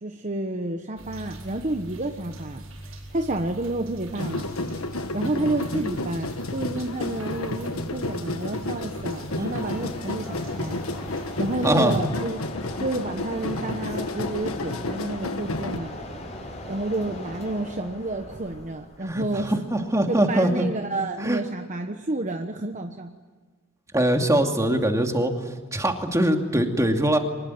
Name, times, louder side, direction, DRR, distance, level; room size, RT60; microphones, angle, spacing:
voice 1, 0.0-4.5 5.1-12.4 12.8-15.9 16.7-19.6 20.1-23.1, right 2 dB, 35° right, 5 dB, 1.2 m, -30 dB
sound 1, 1.0-12.0, right 1 dB, 85° right, 7.9 m, -42 dB
sound 2, 4.2-15.8, left 2 dB, 80° left, 1.5 m, -31 dB
Mechanisms, 7.8-20.2, left 1 dB, 35° left, 5.8 m, -40 dB
voice 2, 11.6-12.0 19.1-20.7 21.2-21.4 23.9-27.2, right 1 dB, 15° right, 3 dB, 2.6 m, -22 dB
24.5 x 21.0 x 9.4 m, 1.5 s
head